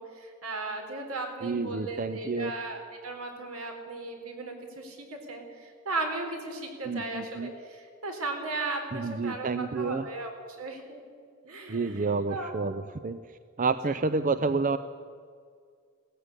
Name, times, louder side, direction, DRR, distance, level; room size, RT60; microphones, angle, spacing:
voice 1, 0.0-11.0 11.4-12.5, right 2 dB, 75° right, 4 dB, 4.1 m, -36 dB
voice 2, 1.4-2.5 6.9-7.5 8.9-10.1 11.7-13.2 13.6-14.8, right 4 dB, 35° right, 12 dB, 0.5 m, -29 dB
18.0 x 15.0 x 9.8 m, 2.1 s
head